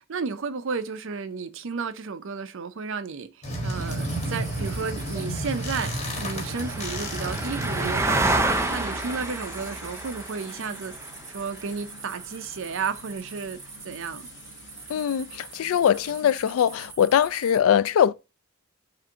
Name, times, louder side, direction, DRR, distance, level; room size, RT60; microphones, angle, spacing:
voice 1, 0.0-13.6 13.8-14.3, right 5 dB, 60° right, 0.5 m, -33 dB
sound 1, 3.4-8.6, right 1 dB, 30° left, 1.4 m, -31 dB
sound 2, 3.9-17.6, right 2 dB, 10° right, 0.4 m, -33 dB
sound 3, 8.5-16.9, left 3 dB, 55° left, 0.9 m, -46 dB
voice 2, 14.9-18.1, left 9 dB, 75° left, 0.3 m, -22 dB
5.7 x 2.6 x 3.5 m
head